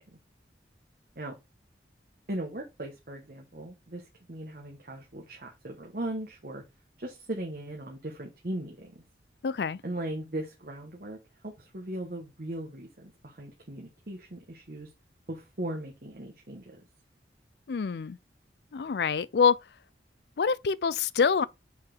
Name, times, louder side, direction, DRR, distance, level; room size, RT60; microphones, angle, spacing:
voice 1, 2.3-6.6 7.0-9.0 9.8-11.2 11.4-14.9 15.3-16.8, right 1 dB, 55° right, 1.3 m, -38 dB
voice 2, 9.4-9.8 17.7-18.2 18.7-19.6 20.4-21.4, left 6 dB, 65° left, 0.4 m, -25 dB
5.7 x 4.9 x 3.9 m
head